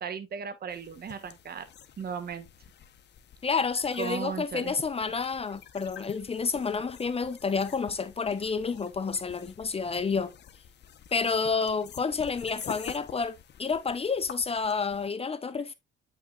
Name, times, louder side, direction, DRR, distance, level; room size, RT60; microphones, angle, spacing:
voice 1, 0.0-1.7 2.0-2.5 4.0-4.7, right 7 dB, 50° right, 1.2 m, -36 dB
sound 1, 0.7-15.1, left 9 dB, 60° left, 1.0 m, -48 dB
voice 2, 3.4-10.3 11.1-15.7, left 5 dB, 30° left, 0.7 m, -29 dB
8.7 x 5.8 x 2.5 m
cardioid pair, 90°, 20 cm